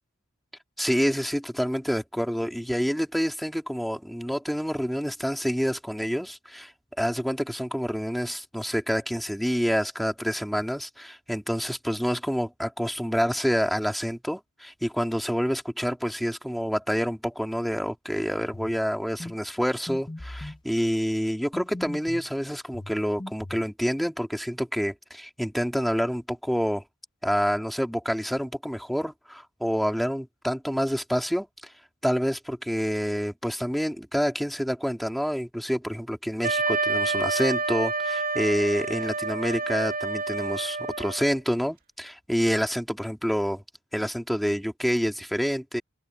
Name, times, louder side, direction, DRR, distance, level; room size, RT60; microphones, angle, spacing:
voice 1, 0.8-6.7 7.0-26.8 27.2-31.5 32.0-43.6 43.9-45.8, equal, ahead, 2.5 m, -27 dB
sound 1, 18.5-18.8 19.2-19.4 19.9-20.6 21.5-22.3 22.7-23.7, left 1 dB, 20° left, 0.8 m, -39 dB
Wind instrument woodwind instrument, 36.4-41.3, right 3 dB, 45° right, 2.4 m, -28 dB
head